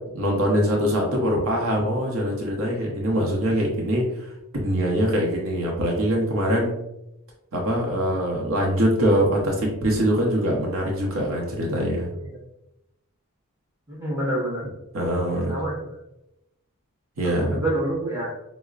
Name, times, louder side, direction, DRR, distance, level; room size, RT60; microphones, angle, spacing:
voice 1, 0.1-6.7 7.5-12.1 14.9-15.6 17.2-17.6, equal, 65° right, -1 dB, 0.7 m, -23 dB
voice 2, 13.9-14.7 15.3-15.8 17.4-18.3, right 1 dB, 10° right, -7 dB, 1.2 m, -27 dB
4.8 x 2.0 x 2.4 m, 0.86 s
head